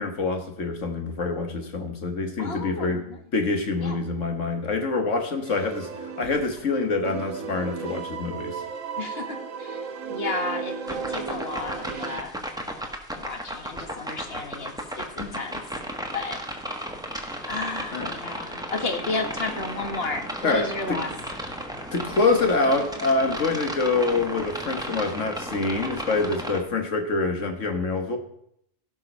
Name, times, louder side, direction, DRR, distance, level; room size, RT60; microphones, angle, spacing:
voice 1, 0.0-3.0 3.3-5.9 6.2-8.6 17.9-18.4 20.4-21.0 21.9-28.2, left 3 dB, 70° left, 5 dB, 1.9 m, -26 dB
voice 2, 2.4-3.2 3.8-4.0 9.0-12.4 13.2-15.6 16.1-16.4 17.5-21.1, left 3 dB, 50° left, 5 dB, 1.7 m, -33 dB
sound 1, 5.4-6.7 7.0-12.2, right 5 dB, 75° right, 1.4 m, -35 dB
sound 2, 10.9-26.6, right 1 dB, 5° right, 1.3 m, -34 dB
17.0 x 5.7 x 5.4 m, 0.72 s
omnidirectional pair, 1.4 m